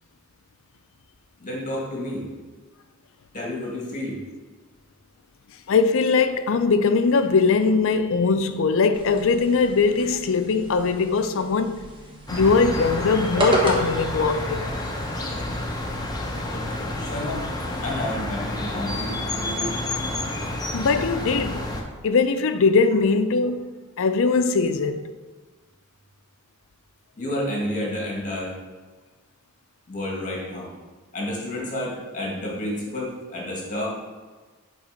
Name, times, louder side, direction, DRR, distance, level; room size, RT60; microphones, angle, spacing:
voice 1, 1.4-2.3 3.3-4.2 17.0-17.4 17.8-19.7 27.2-28.5 29.9-30.7 31.1-33.9, left 1 dB, 40° left, 2.0 m, -30 dB
voice 2, 5.7-11.8 12.3-14.7 20.7-21.7 22.0-23.7 24.0-25.1, left 4 dB, 65° left, 0.5 m, -21 dB
sound 1, 8.9-18.1, right 1 dB, 25° right, 1.2 m, -33 dB
sound 2, 12.3-21.8, left 1 dB, 20° left, 0.9 m, -29 dB
7.9 x 4.1 x 5.1 m
head